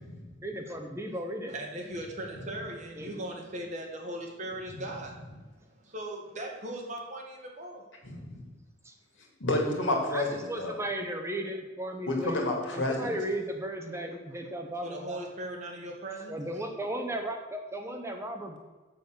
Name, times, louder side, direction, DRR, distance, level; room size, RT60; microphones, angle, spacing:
voice 1, 0.4-1.5 3.0-3.2 8.8-8.9 10.1-15.3 16.3-18.6, right 1 dB, 15° right, 3 dB, 0.9 m, -35 dB
voice 2, 1.5-5.2 5.7-7.8 14.8-16.4, right 1 dB, 40° right, 0 dB, 1.8 m, -39 dB
voice 3, 8.0-8.4 9.4-10.7 12.1-13.2, left 2 dB, 85° left, 1 dB, 2.2 m, -30 dB
7.0 x 6.9 x 6.6 m, 1.2 s
head